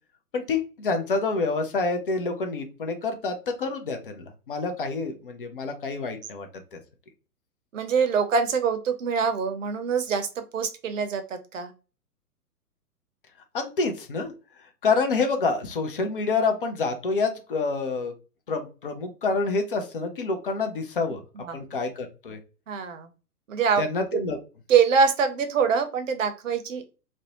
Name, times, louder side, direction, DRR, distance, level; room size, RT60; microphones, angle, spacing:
voice 1, 0.3-6.8 13.5-14.3 14.8-18.1 18.5-21.2 21.5-22.4 23.8-24.4, left 4 dB, 40° left, 5 dB, 0.4 m, -27 dB
voice 2, 7.7-11.7 21.3-21.6 22.7-23.1 23.5-23.8 24.1-24.2 24.7-26.8, right 6 dB, 55° right, 8 dB, 0.6 m, -24 dB
2.5 x 2.0 x 2.8 m, 0.33 s
figure-of-eight pair, 115°, 47 cm